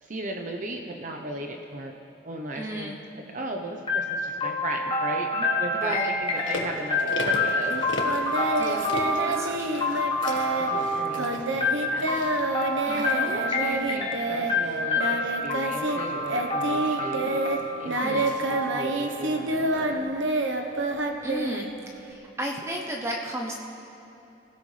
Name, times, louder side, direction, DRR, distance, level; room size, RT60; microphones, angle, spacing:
voice 1, 0.0-1.9 2.2-2.9 3.3-8.2 10.6-12.2 12.6-17.4 17.8-20.1, right 1 dB, 40° right, 2 dB, 0.9 m, -36 dB
voice 2, 2.5-3.0 5.7-6.1 8.6-8.9 9.3-9.8 12.9-13.0 18.0-18.3 21.2-23.6, equal, 15° right, 0 dB, 0.9 m, -34 dB
sound 1, 3.9-19.7, left 2 dB, 30° left, 1.7 m, -28 dB
sound 2, 6.3-13.6 14.1-14.2, left 2 dB, 75° left, 1.6 m, -37 dB
Singing, 8.0-16.0 16.3-22.1, right 2 dB, 80° right, 1.1 m, -28 dB
27.0 x 16.0 x 3.4 m, 2.9 s
head